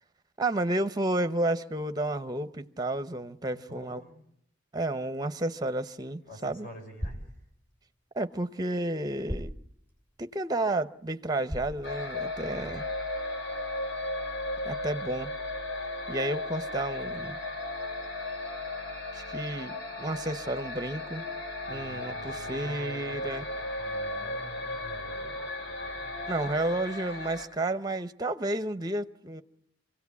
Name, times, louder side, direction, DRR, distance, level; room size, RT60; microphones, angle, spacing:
voice 1, 0.4-4.0 4.7-6.7 8.1-9.5 10.2-12.8 14.6-15.3 16.1-17.4 19.1-21.3 21.7-23.4 26.3-29.4, right 2 dB, 20° right, 0.8 m, -31 dB
voice 2, 3.5-4.2 6.2-7.3 21.6-26.2, right 1 dB, 50° left, 5.7 m, -48 dB
sound 1, 5.7-12.7, equal, 10° left, 5.8 m, -43 dB
sound 2, 11.8-27.5, left 2 dB, 80° left, 4.0 m, -36 dB
25.5 x 17.0 x 8.4 m
head